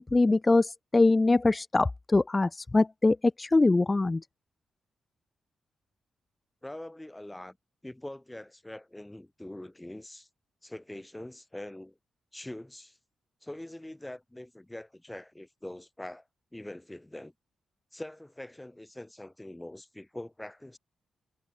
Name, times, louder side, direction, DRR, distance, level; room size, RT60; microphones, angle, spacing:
voice 1, 0.0-4.2, left 2 dB, 25° left, 0.3 m, -23 dB
voice 2, 6.6-7.6 7.8-10.3 10.6-12.0 12.3-13.0 13.4-16.2 16.5-17.3 17.9-20.8, left 1 dB, 10° left, 2.3 m, -43 dB
cardioid pair, 60°, 0 cm